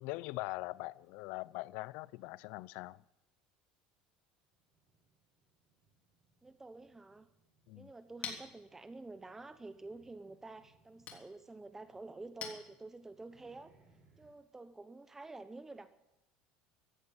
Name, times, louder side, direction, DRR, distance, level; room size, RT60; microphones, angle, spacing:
voice 1, 0.0-3.0 7.7-7.9, left 21 dB, 70° left, 0.5 m, -42 dB
sound 1, 4.4-14.3, right 4 dB, 40° right, 7.1 m, -71 dB
voice 2, 6.4-7.3 7.8-13.7 14.2-15.9, right 3 dB, 15° right, 1.0 m, -49 dB
Chink clink, 7.6-13.3, left 7 dB, 45° left, 3.4 m, -51 dB
15.5 x 11.0 x 8.2 m
supercardioid pair, 105°, 3 cm